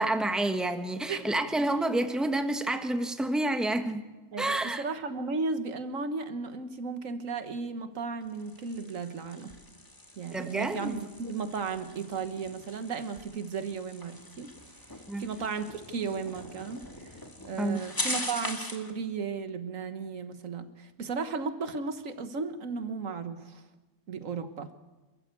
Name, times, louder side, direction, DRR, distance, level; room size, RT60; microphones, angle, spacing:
voice 1, 0.0-4.1 4.4-4.8 10.3-11.0 15.1-15.2 17.6-17.8, right 1 dB, ahead, 7 dB, 1.3 m, -29 dB
voice 2, 4.3-9.5 10.2-14.5 15.2-17.2 17.4-23.6 24.1-24.7, right 4 dB, 90° right, 10 dB, 1.7 m, -35 dB
sound 1, 8.2-18.9, left 1 dB, 15° left, 2.1 m, -41 dB
27.0 x 14.0 x 8.3 m, 1.2 s
omnidirectional pair, 1.3 m